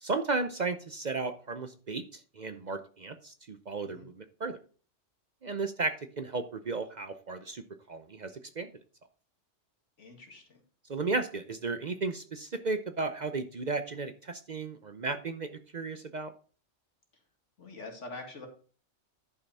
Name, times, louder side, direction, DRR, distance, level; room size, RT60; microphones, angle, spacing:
voice 1, 0.0-4.6 5.4-8.7 10.9-15.5 15.7-16.3, right 3 dB, 45° right, 9 dB, 0.7 m, -34 dB
voice 2, 10.0-10.6 17.6-18.5, left 2 dB, 75° left, 2 dB, 2.4 m, -45 dB
11.0 x 5.7 x 4.2 m, 0.39 s
omnidirectional pair, 1.2 m